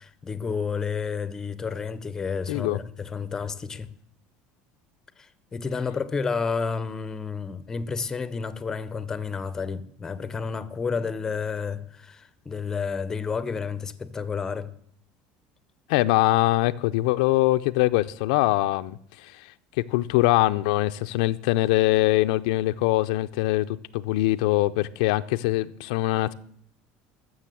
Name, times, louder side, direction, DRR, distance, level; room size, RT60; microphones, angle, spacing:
voice 1, 0.0-3.9 5.2-14.7, left 5 dB, 15° left, 0.5 m, -31 dB
voice 2, 2.5-2.8 15.9-19.3 19.9-26.3, left 17 dB, 85° left, 0.5 m, -23 dB
13.5 x 6.6 x 7.6 m
cardioid pair, 175°, 4 cm